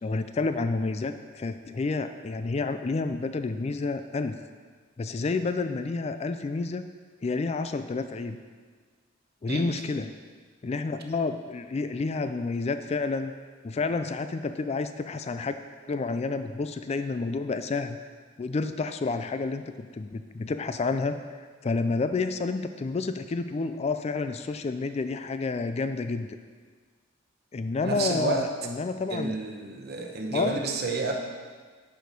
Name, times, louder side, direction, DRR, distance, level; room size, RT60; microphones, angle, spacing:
voice 1, 0.0-4.4 5.0-6.8 7.2-8.4 9.4-10.1 10.6-13.3 13.6-15.6 15.9-18.0 18.4-21.2 21.6-26.4 27.5-29.3 30.3-30.6, left 3 dB, 30° left, 9 dB, 0.3 m, -29 dB
voice 2, 27.8-28.5 29.1-31.2, right 3 dB, 55° right, 2 dB, 1.0 m, -30 dB
10.5 x 4.9 x 5.3 m, 1.6 s
head